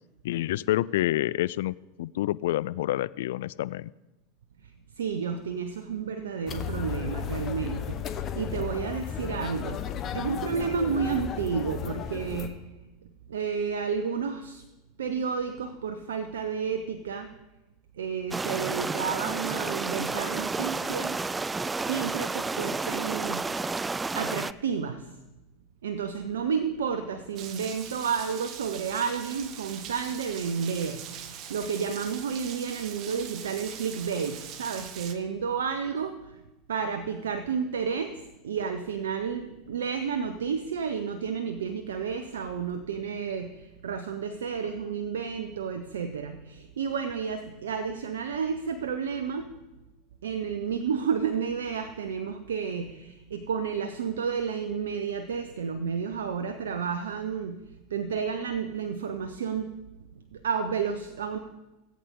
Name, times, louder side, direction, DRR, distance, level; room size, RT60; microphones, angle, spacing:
voice 1, 0.2-3.9, left 15 dB, 75° left, 20 dB, 0.3 m, -28 dB
voice 2, 4.6-12.7 13.3-14.6 15.0-17.3 17.9-21.2 21.8-23.6 24.1-25.1 25.8-36.4 36.7-49.5 50.2-59.8 60.1-61.4, right 6 dB, 85° right, 8 dB, 0.8 m, -31 dB
sound 1, 6.5-12.5, left 9 dB, 40° left, 1.2 m, -34 dB
sound 2, 18.3-24.5, right 3 dB, 15° right, 0.3 m, -31 dB
Rain, 27.4-35.1, right 9 dB, 50° right, 1.1 m, -42 dB
17.5 x 8.6 x 3.7 m, 1.0 s
hypercardioid pair, 90°, 0 cm